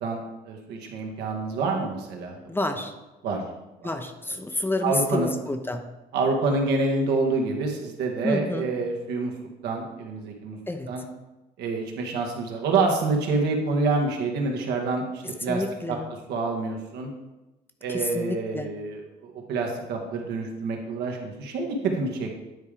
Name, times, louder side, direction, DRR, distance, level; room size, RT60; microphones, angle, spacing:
voice 1, 0.0-2.4 2.7-2.8 3.2-3.4 3.8-3.9 4.3-4.4 4.8-5.3 6.1-9.3 9.6-10.6 10.9-11.0 11.6-16.0 16.3-17.1 17.8-22.3, right 3 dB, 80° right, 1 dB, 1.5 m, -27 dB
voice 2, 2.5-2.9 3.8-5.8 8.2-8.7 10.7-10.9 15.4-16.1 17.9-18.7, left 2 dB, 15° left, 7 dB, 0.6 m, -29 dB
9.8 x 3.6 x 4.9 m, 1.0 s
cardioid pair, 110°, 17 cm